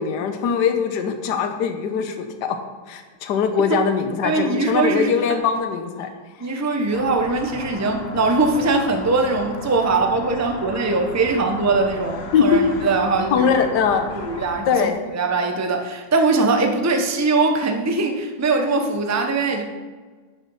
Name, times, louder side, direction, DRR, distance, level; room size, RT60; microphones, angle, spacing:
voice 1, 0.0-2.6 2.9-6.1 12.3-12.6 13.3-14.1 14.7-15.0, left 6 dB, 75° left, 6 dB, 1.4 m, -21 dB
voice 2, 4.2-5.4 6.4-13.6 14.1-19.6, right 3 dB, 15° right, 4 dB, 0.5 m, -21 dB
sound 1, 6.9-14.6, left 4 dB, 45° left, 1.0 m, -35 dB
10.5 x 6.3 x 5.5 m, 1.4 s
omnidirectional pair, 1.9 m